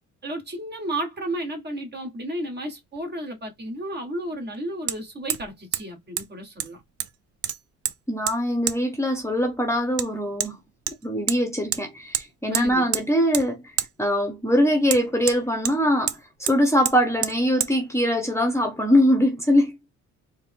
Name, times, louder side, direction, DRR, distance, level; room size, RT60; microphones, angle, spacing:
voice 1, 0.2-6.8 12.5-12.9, right 1 dB, 35° right, 1.6 m, -32 dB
Hammer, 3.0-3.1 4.9-5.0 5.3-5.5 5.7-5.8 6.2-6.3 6.6-7.1 7.4-8.0 8.3-8.4 8.7-8.8 10.0-10.1 10.4-10.5 10.9-11.4 11.7-11.8 12.1-12.3 12.5-13.1 13.3-13.5 13.8-13.9 14.9-15.8 16.1-16.2 16.5-16.6 16.9-17.0 17.2-17.4 17.6-17.7, right 10 dB, 55° right, 0.5 m, -27 dB
voice 2, 8.1-10.6 11.0-13.6 14.0-19.8, equal, 10° left, 1.0 m, -22 dB
4.4 x 2.1 x 3.6 m
cardioid pair, 90°, 30 cm